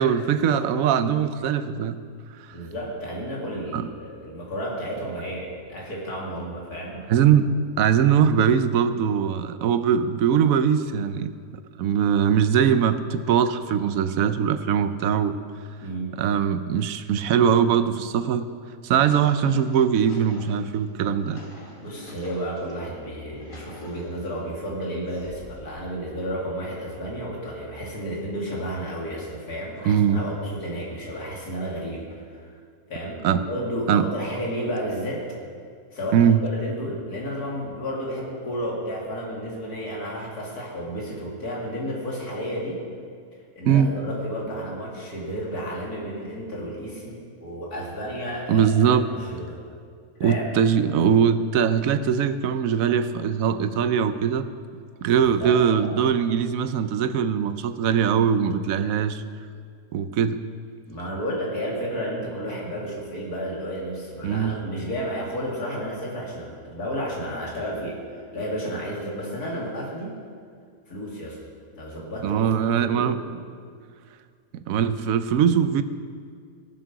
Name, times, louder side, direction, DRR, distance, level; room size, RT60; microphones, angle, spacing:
voice 1, 0.0-2.0 3.7-3.8 7.1-7.5 7.8-11.3 11.8-15.4 16.2-18.5 18.8-21.4 29.8-30.2 33.2-33.4 33.9-34.1 36.1-36.4 43.7-43.9 48.5-49.1 50.2-54.5 55.0-59.2 59.9-60.4 64.2-64.6 72.2-73.2 74.5-75.8, right 8 dB, 70° right, 11 dB, 1.0 m, -21 dB
voice 2, 2.5-7.0 15.8-16.2 21.8-32.5 32.9-35.2 35.9-42.8 43.6-49.6 50.2-50.4 55.1-56.0 60.9-70.2 70.9-71.4 71.7-72.4 72.8-73.4, equal, 85° left, -3 dB, 2.9 m, -32 dB
sound 1, 18.6-22.7 23.2-24.4 25.1-25.8, left 1 dB, 60° left, 2.4 m, -47 dB
16.5 x 7.5 x 5.9 m, 2.2 s
omnidirectional pair, 1.6 m